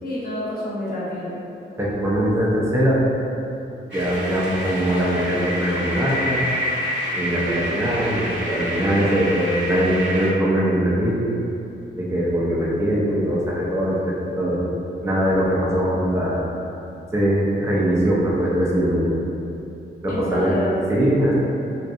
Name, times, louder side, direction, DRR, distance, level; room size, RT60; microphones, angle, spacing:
voice 1, 0.0-1.3 20.1-20.8, left 1 dB, 50° left, -7 dB, 0.8 m, -28 dB
voice 2, 1.8-3.0 3.9-6.4 7.2-11.2 11.9-14.7 15.0-16.4 17.1-19.2 20.0-20.5 20.9-21.3, equal, 15° right, -6 dB, 0.4 m, -21 dB
sound 1, 3.9-10.3, equal, 70° right, 0.9 m, -28 dB
2.6 x 2.2 x 2.4 m, 2.7 s
wide cardioid pair, 120°, 19 cm